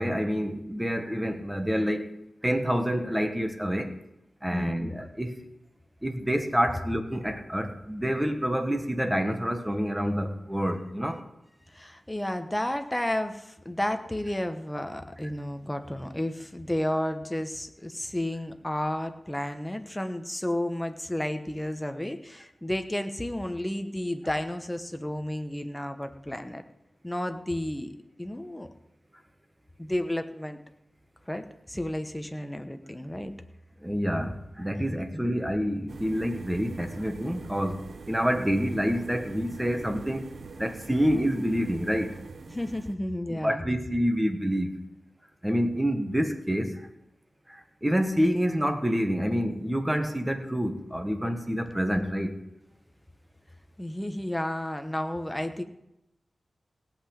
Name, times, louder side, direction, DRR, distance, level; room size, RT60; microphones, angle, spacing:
voice 1, 0.0-2.1 2.4-3.9 4.4-5.3 6.0-11.2 33.8-40.3 40.6-42.1 43.3-44.7 45.4-46.9 47.5-52.3, equal, 10° right, 6 dB, 1.3 m, -27 dB
voice 2, 4.5-4.9 11.7-26.6 27.0-28.7 29.8-30.6 31.3-33.3 34.9-35.2 42.5-43.7 53.8-55.6, left 1 dB, 10° left, 7 dB, 1.0 m, -32 dB
sound 1, 35.9-42.9, right 4 dB, 65° right, 0.8 m, -43 dB
16.5 x 5.9 x 8.5 m, 0.86 s
wide cardioid pair, 115°, 0 cm